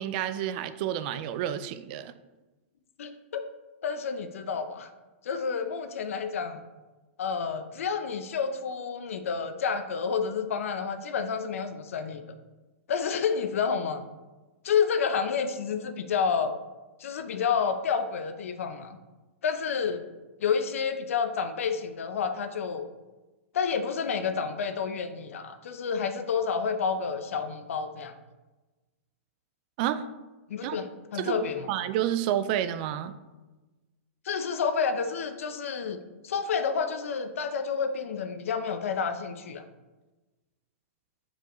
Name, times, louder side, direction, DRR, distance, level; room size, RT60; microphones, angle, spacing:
voice 1, 0.0-2.1 29.8-30.1 30.6-30.8 31.2-31.4 31.7-33.2, right 11 dB, 40° right, 12 dB, 0.4 m, -29 dB
voice 2, 3.0-3.5 3.8-4.9 5.2-6.6 7.2-12.2 12.9-14.0 14.6-16.6 17.0-19.0 19.4-20.1 20.4-22.8 23.5-28.1 30.5-31.7 34.2-39.6, left 6 dB, 75° left, 8 dB, 0.6 m, -29 dB
6.5 x 4.8 x 3.0 m, 1.2 s
hypercardioid pair, 145°, 7 cm